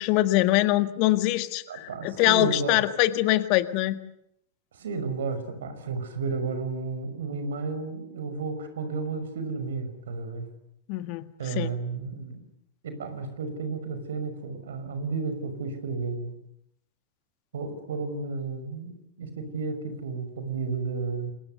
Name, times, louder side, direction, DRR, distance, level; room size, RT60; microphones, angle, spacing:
voice 1, 0.0-4.0 10.9-11.3 11.5-11.7, left 16 dB, 45° left, 12 dB, 1.6 m, -23 dB
voice 2, 1.7-2.8 4.7-10.5 11.4-12.4 12.8-16.4 17.5-21.3, right 4 dB, 65° right, 10 dB, 5.7 m, -32 dB
28.5 x 28.0 x 6.8 m, 0.74 s
figure-of-eight pair, 90°, 0 cm